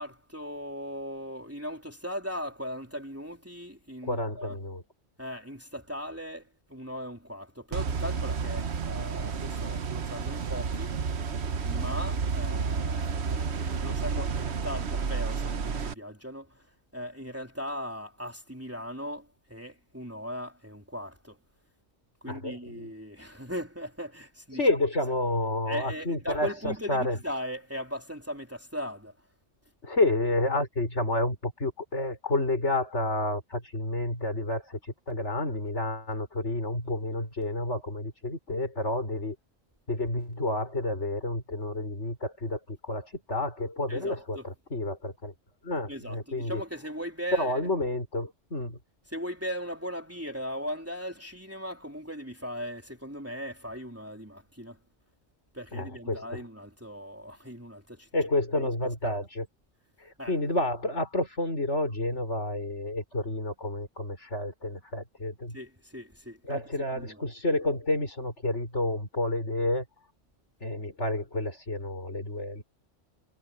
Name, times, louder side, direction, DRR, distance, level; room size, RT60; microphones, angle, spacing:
voice 1, 0.0-4.6 5.2-11.0 11.6-21.4 22.2-24.8 25.7-29.2 43.9-44.5 45.9-47.6 49.1-54.8 55.5-58.1 59.0-59.2 60.2-60.3 65.5-66.6 66.9-67.3, equal, 10° right, 3.6 m, -38 dB
voice 2, 4.0-4.8 14.2-14.3 22.3-22.9 24.5-27.2 29.8-39.4 39.9-45.3 45.6-46.6 47.3-48.8 55.7-56.4 58.1-59.5 60.0-65.6 66.4-69.9 70.6-72.6, left 2 dB, 65° left, 5.9 m, -30 dB
sound 1, 7.7-15.9, right 5 dB, 60° right, 1.3 m, -31 dB
omnidirectional pair, 1.3 m